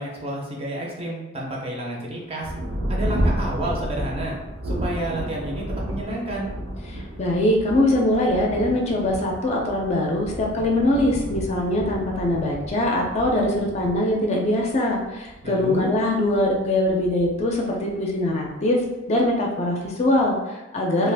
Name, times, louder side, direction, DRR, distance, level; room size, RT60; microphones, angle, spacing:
voice 1, 0.0-2.5 2.9-4.3 4.6-6.5 15.4-15.9, right 1 dB, 30° right, -2 dB, 0.5 m, -30 dB
Thunder, 2.4-18.4 19.2-19.3 19.9-20.3, right 1 dB, 85° right, 0.6 m, -32 dB
voice 2, 6.9-18.8 19.1-21.1, left 1 dB, 35° left, -1 dB, 0.4 m, -22 dB
2.4 x 2.4 x 3.4 m, 1.0 s
head